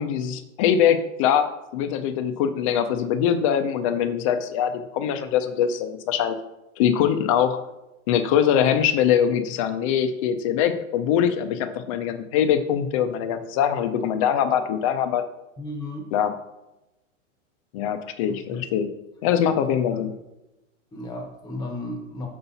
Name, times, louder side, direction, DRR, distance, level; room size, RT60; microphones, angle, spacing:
voice 1, 0.0-6.4 6.8-7.6 8.1-15.2 16.1-16.3 17.7-18.9 19.2-20.1, left 9 dB, 25° left, 9 dB, 0.4 m, -23 dB
voice 2, 15.6-16.1 18.3-18.7 19.9-20.1 20.9-22.3, left 1 dB, 10° left, 3 dB, 0.9 m, -34 dB
6.8 x 5.6 x 4.0 m, 0.95 s
supercardioid pair, 160°, 39 cm